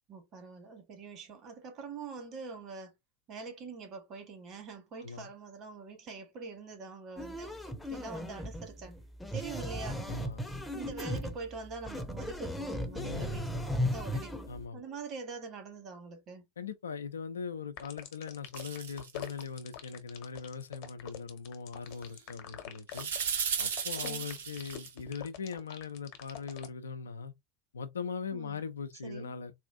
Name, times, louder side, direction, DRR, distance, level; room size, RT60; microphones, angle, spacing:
voice 1, 0.1-2.9 3.3-8.9 9.3-10.1 10.7-14.3 14.7-16.4 24.0-24.3 28.3-28.6 29.0-29.3, right 4 dB, 40° right, 1.4 m, -44 dB
sound 1, 7.2-14.6, left 1 dB, 5° left, 0.7 m, -36 dB
voice 2, 10.1-10.4 12.9-13.5 14.5-15.0 16.6-23.1 23.6-27.3 27.7-29.5, left 5 dB, 75° left, 0.5 m, -40 dB
sound 2, 17.8-26.7, left 10 dB, 55° left, 0.9 m, -45 dB
sound 3, 18.6-19.4 22.9-24.9, right 7 dB, 70° right, 0.8 m, -35 dB
4.1 x 2.4 x 2.5 m
figure-of-eight pair, 75°, 0 cm